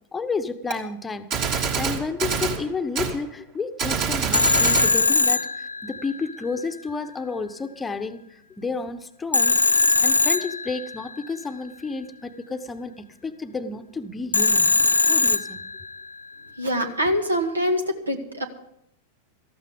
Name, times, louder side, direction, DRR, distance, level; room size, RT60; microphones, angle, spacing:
voice 1, 0.1-8.2 8.6-14.7 15.1-15.6, left 4 dB, 15° left, 1.0 m, -31 dB
Gunshot gunfire, 0.7-0.8 1.3-2.6 3.0-3.1 3.8-4.9, right 6 dB, 45° right, 2.8 m, -25 dB
Telephone, 4.3-6.3 9.3-11.1 14.3-16.0, left 3 dB, 75° left, 0.4 m, -21 dB
voice 2, 16.6-18.4, equal, 75° right, 1.8 m, -24 dB
18.5 x 14.5 x 3.6 m
figure-of-eight pair, 90°, 0 cm